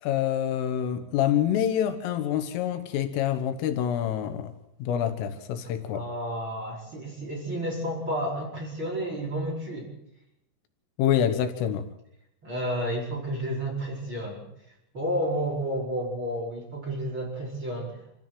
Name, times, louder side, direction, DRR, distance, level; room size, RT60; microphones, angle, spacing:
voice 1, 0.0-4.5 4.8-6.0 11.0-11.9, left 10 dB, 85° left, 3.8 m, -26 dB
voice 2, 5.9-9.9 12.4-14.4 14.9-18.1, equal, 25° right, 5.5 m, -31 dB
27.0 x 15.0 x 7.6 m
omnidirectional pair, 5.6 m